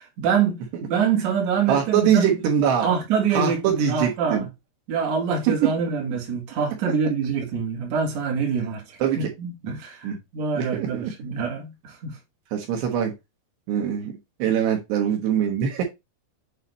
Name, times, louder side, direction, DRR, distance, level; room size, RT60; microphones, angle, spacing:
voice 1, 0.0-2.3 2.8-4.5 4.9-12.2, right 6 dB, 50° right, 2.5 m, -25 dB
voice 2, 1.7-2.9 3.3-4.5 5.5-5.7 9.0-9.3 10.0-10.2 10.5-11.1 12.5-13.1 13.7-14.1 14.4-15.8, right 9 dB, 75° right, 3.1 m, -22 dB
8.1 x 3.2 x 4.1 m
omnidirectional pair, 5.2 m